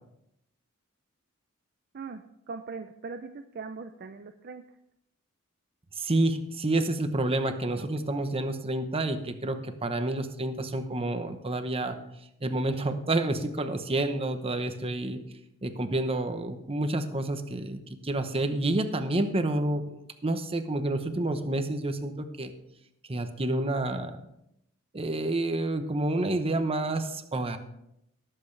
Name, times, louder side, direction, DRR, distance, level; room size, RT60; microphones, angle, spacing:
voice 1, 1.9-4.6 7.7-7.9, right 4 dB, 45° right, 7 dB, 0.5 m, -40 dB
voice 2, 6.0-12.0 12.4-15.2 15.6-20.0 20.2-22.5 23.1-24.2 24.9-27.6, right 2 dB, 25° right, 8 dB, 0.9 m, -29 dB
18.5 x 7.7 x 3.3 m, 0.80 s
head